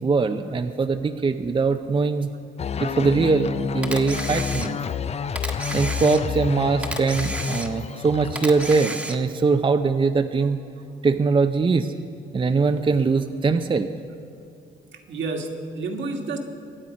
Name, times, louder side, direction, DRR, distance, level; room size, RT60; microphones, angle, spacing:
voice 1, 0.0-2.3 2.8-4.8 5.7-10.6 11.0-11.9 12.3-13.9, right 4 dB, 25° right, 7 dB, 0.6 m, -22 dB
sound 1, 2.6-8.9, left 6 dB, 30° left, 0.4 m, -29 dB
Camera, 3.8-5.0 5.4-6.5 6.8-8.0 8.4-9.4, right 1 dB, 5° right, 1.3 m, -32 dB
voice 2, 14.9-16.4, right 3 dB, 70° right, 3 dB, 1.9 m, -30 dB
23.5 x 8.6 x 5.2 m, 2.6 s
cardioid pair, 90°, 20 cm